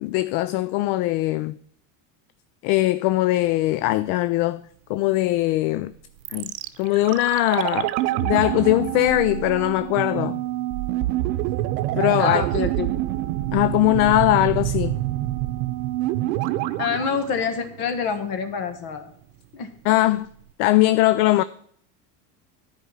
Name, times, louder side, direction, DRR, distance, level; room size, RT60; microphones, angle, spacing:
voice 1, 0.0-1.6 2.6-5.9 6.3-10.4 11.9-12.4 13.5-15.0 19.8-20.3 20.6-21.4, left 17 dB, 70° left, 0.5 m, -21 dB
sound 1, 6.2-18.2 18.5-18.6, right 15 dB, 90° right, 0.7 m, -26 dB
voice 2, 12.2-12.9 16.8-19.1 19.5-19.7, left 6 dB, 50° left, 1.6 m, -27 dB
10.5 x 5.2 x 7.7 m
cardioid pair, 140°, 46 cm